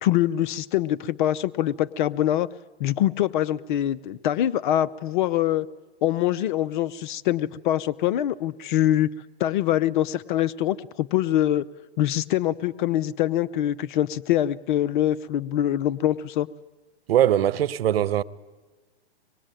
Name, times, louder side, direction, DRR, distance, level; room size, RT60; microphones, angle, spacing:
voice 1, 0.0-2.5 2.8-5.7 6.0-9.1 9.4-11.6 12.0-16.5, left 12 dB, 50° left, 0.8 m, -24 dB
voice 2, 17.1-18.2, right 11 dB, 65° right, 1.1 m, -21 dB
25.5 x 20.0 x 9.1 m
hypercardioid pair, 130°, 32 cm